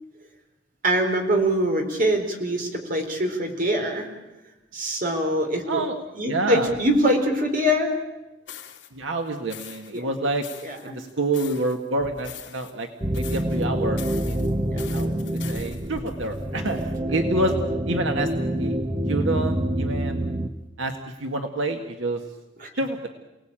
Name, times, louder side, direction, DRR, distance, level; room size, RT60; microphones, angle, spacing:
voice 1, 0.8-4.1 4.7-5.8 6.1-7.9 9.9-10.1 10.6-11.0 14.7-15.0 22.6-22.7, equal, 45° right, 4 dB, 4.2 m, -24 dB
voice 2, 6.3-6.7 8.9-10.5 10.8-12.9 13.2-14.4 14.9-18.3 18.6-18.8 19.1-20.4 20.8-22.2 22.8-23.1, right 2 dB, 80° right, 4 dB, 1.8 m, -28 dB
sound 1, 8.5-8.9 9.5-10.0 10.4-11.8 12.2-12.9 13.1-13.6 14.0-17.0, left 11 dB, 65° left, 3.0 m, -43 dB
sound 2, 13.0-20.5, right 1 dB, 25° right, 1.3 m, -26 dB
29.0 x 18.5 x 8.9 m, 1.1 s
head